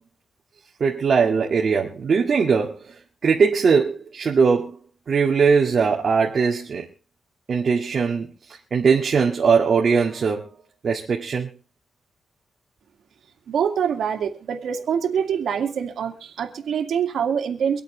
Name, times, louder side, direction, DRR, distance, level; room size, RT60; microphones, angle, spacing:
voice 1, 0.8-2.9 3.2-4.7 5.1-6.9 7.5-8.3 8.7-10.5 10.8-11.5, right 5 dB, 55° right, 2.1 m, -20 dB
voice 2, 13.5-17.8, right 7 dB, 85° right, 2.3 m, -25 dB
25.0 x 8.4 x 3.4 m
wide cardioid pair, 120°, 0 cm